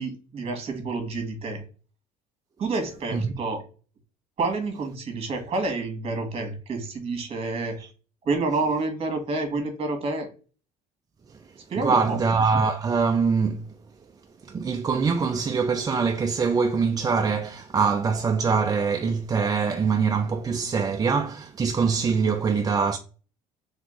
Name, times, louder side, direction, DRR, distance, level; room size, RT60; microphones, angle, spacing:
voice 1, 0.0-1.6 2.6-3.6 4.4-7.8 8.2-10.3 11.7-12.2, right 3 dB, 40° right, 1.7 m, -28 dB
voice 2, 11.8-13.7 14.4-23.0, right 5 dB, 25° right, 0.4 m, -23 dB
3.6 x 3.5 x 3.7 m
cardioid pair, 105°, 16 cm